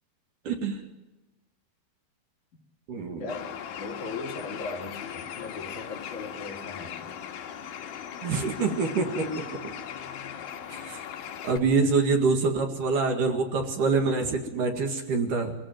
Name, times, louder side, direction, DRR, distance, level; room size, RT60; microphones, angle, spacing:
voice 1, 0.4-0.8 2.9-3.3 8.2-9.7 10.7-11.0 11.4-15.6, right 4 dB, 60° right, 4 dB, 3.2 m, -26 dB
voice 2, 3.2-3.5 3.8-7.1, left 4 dB, 50° left, 0 dB, 3.8 m, -38 dB
Bird, 3.3-11.6, left 8 dB, 70° left, 3.2 m, -39 dB
22.5 x 16.5 x 9.2 m, 1.1 s
omnidirectional pair, 4.6 m